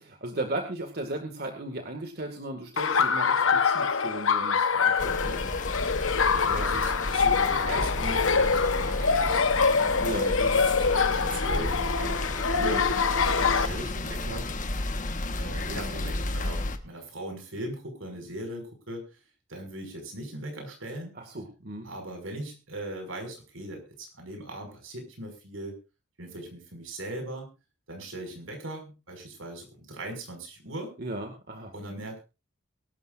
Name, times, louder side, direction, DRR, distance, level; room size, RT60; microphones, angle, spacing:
voice 1, 0.0-5.5 10.0-10.3 12.6-12.9 21.2-21.9 31.0-31.7, right 2 dB, 50° right, 4 dB, 2.0 m, -36 dB
Laughter, 2.8-13.7, left 5 dB, 80° left, 1.1 m, -25 dB
sound 1, 5.0-16.8, left 2 dB, 40° left, 1.4 m, -32 dB
voice 2, 6.2-12.5 13.3-14.5 15.4-19.2 19.5-21.1 21.8-25.8 26.2-27.5 27.9-30.9 31.7-32.2, right 1 dB, 80° right, 4 dB, 6.0 m, -39 dB
23.5 x 12.5 x 2.6 m, 0.30 s
head